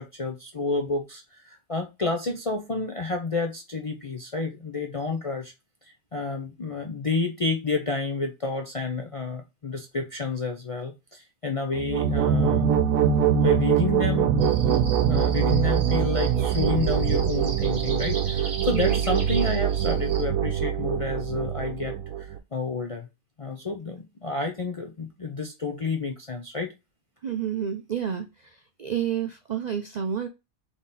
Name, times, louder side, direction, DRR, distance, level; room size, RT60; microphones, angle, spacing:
voice 1, 0.0-5.5 6.1-12.7 13.4-23.1 23.4-26.7, left 3 dB, 45° left, 2 dB, 0.4 m, -30 dB
sound 1, 11.7-22.4, right 8 dB, 90° right, 1.0 m, -23 dB
sound 2, 14.4-20.2, right 3 dB, 35° right, 1.3 m, -39 dB
voice 2, 27.2-28.3 28.8-30.3, right 8 dB, 60° right, 6 dB, 0.4 m, -29 dB
3.8 x 3.5 x 4.0 m, 0.24 s
omnidirectional pair, 1.4 m